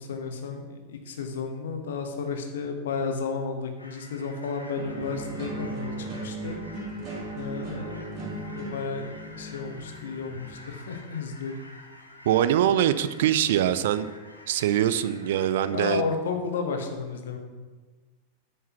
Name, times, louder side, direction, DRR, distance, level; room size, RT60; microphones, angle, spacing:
voice 1, 0.0-6.6 7.3-8.2 8.5-9.1 9.4-11.5 15.7-17.4, left 5 dB, 60° left, 5 dB, 1.2 m, -32 dB
sound 1, 3.8-15.8, left 1 dB, 85° left, 1.2 m, -49 dB
sound 2, 4.7-10.8, right 1 dB, 40° right, 2.3 m, -37 dB
voice 2, 12.3-14.1 14.5-16.0, right 11 dB, 55° right, 14 dB, 0.4 m, -23 dB
8.8 x 5.2 x 6.0 m, 1.3 s
figure-of-eight pair, 90°, 0 cm